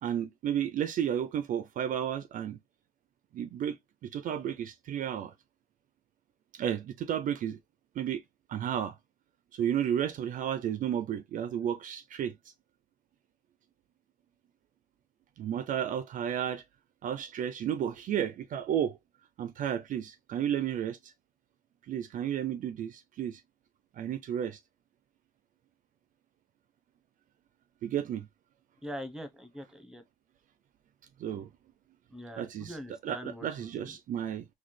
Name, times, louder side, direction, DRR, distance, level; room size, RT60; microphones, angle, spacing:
voice 1, 0.0-2.6 3.3-3.8 4.0-5.3 6.5-7.6 8.0-8.2 8.5-9.0 9.5-12.4 15.4-16.6 17.0-19.0 19.4-21.1 21.9-23.4 24.0-24.6 27.8-28.3 31.2-31.5 32.4-34.5, right 9 dB, 50° right, 0.4 m, -32 dB
voice 2, 28.8-30.0 32.1-34.0, equal, 5° right, 0.9 m, -43 dB
4.0 x 2.2 x 3.1 m
cardioid pair, 110°, 17 cm